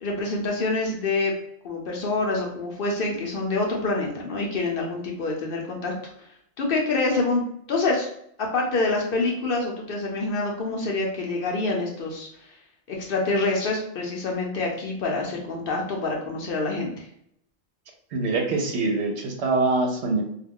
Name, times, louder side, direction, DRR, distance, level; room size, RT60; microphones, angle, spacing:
voice 1, 0.0-1.3 1.6-6.3 6.6-7.4 7.7-8.1 8.4-12.5 12.9-17.0, left 3 dB, 60° left, 0 dB, 0.7 m, -26 dB
voice 2, 18.1-20.2, right 3 dB, 70° right, 2 dB, 0.9 m, -24 dB
2.3 x 2.2 x 3.5 m, 0.73 s
omnidirectional pair, 1.2 m